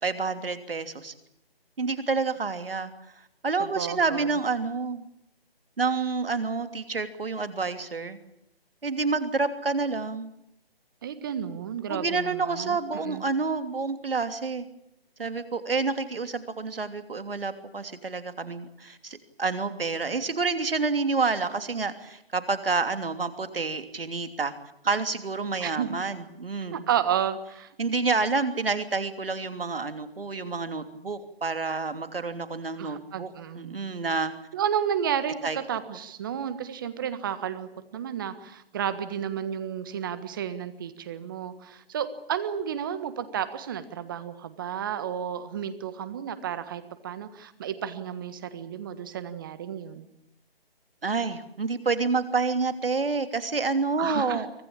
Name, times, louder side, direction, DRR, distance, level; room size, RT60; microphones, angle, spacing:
voice 1, 0.0-1.1 1.8-2.9 3.4-5.1 5.8-8.2 8.8-10.3 11.9-14.7 15.2-24.5 24.8-26.8 27.8-34.3 35.4-35.6 51.0-54.5, right 4 dB, 65° right, 9 dB, 3.1 m, -28 dB
voice 2, 3.8-4.3 11.0-13.2 25.6-26.0 26.7-27.7 32.8-33.8 34.5-50.1 54.0-54.4, right 9 dB, 20° right, 11 dB, 1.5 m, -32 dB
25.0 x 18.0 x 8.7 m, 0.79 s
figure-of-eight pair, 160°, 30 cm